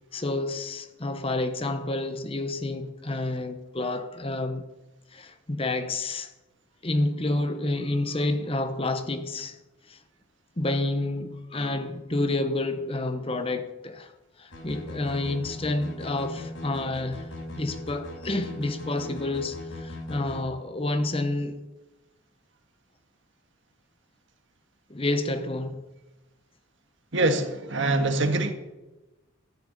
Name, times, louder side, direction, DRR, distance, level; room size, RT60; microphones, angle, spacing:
voice 1, 0.1-4.6 5.1-6.3 6.8-9.6 9.9-10.0 10.6-14.1 14.4-17.3 17.6-21.6 24.9-25.8, left 2 dB, 25° left, 0.9 m, -29 dB
sound 1, 14.5-20.4, left 2 dB, 75° left, 4.7 m, -39 dB
voice 2, 27.1-28.5, right 2 dB, 60° right, 1.6 m, -24 dB
13.5 x 7.9 x 10.0 m
head